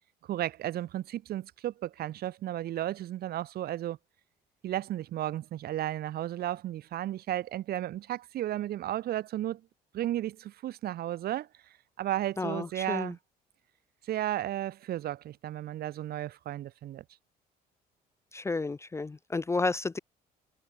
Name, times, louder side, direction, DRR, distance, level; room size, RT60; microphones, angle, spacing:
voice 1, 0.3-4.0 4.6-9.6 9.9-11.5 12.0-13.2 14.0-17.0, right 13 dB, 65° right, 2.5 m, -34 dB
voice 2, 12.4-13.1 18.3-20.0, left 3 dB, 15° left, 0.5 m, -31 dB
cardioid pair, 110°, 17 cm